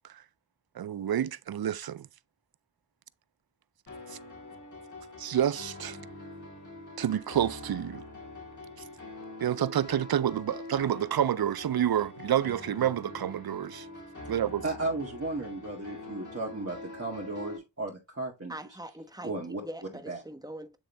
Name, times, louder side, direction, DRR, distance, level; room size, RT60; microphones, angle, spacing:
voice 1, 0.8-2.0 5.2-6.0 7.0-8.0 9.4-13.9 14.3-14.6, right 10 dB, 60° right, 0.5 m, -28 dB
sound 1, 3.9-17.6, left 2 dB, 45° left, 2.6 m, -44 dB
voice 2, 14.6-18.5 19.2-19.6 20.1-20.2, right 2 dB, 35° right, 2.0 m, -35 dB
voice 3, 18.5-19.3 19.6-20.8, right 1 dB, 10° right, 1.1 m, -42 dB
9.0 x 3.7 x 3.3 m
cardioid pair, 50°, 42 cm